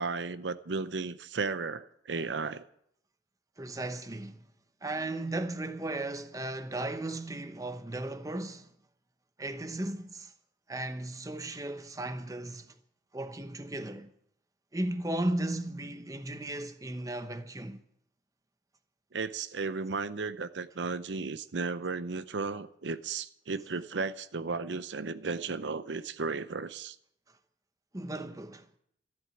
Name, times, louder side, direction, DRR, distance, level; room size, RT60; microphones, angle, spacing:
voice 1, 0.0-2.7 19.1-27.0, right 4 dB, 90° right, 0.7 m, -34 dB
voice 2, 3.6-4.4 4.8-8.7 9.4-10.3 10.7-12.7 13.1-14.1 14.7-17.8 27.9-28.7, right 1 dB, 20° right, 0.9 m, -36 dB
13.5 x 8.0 x 9.6 m
head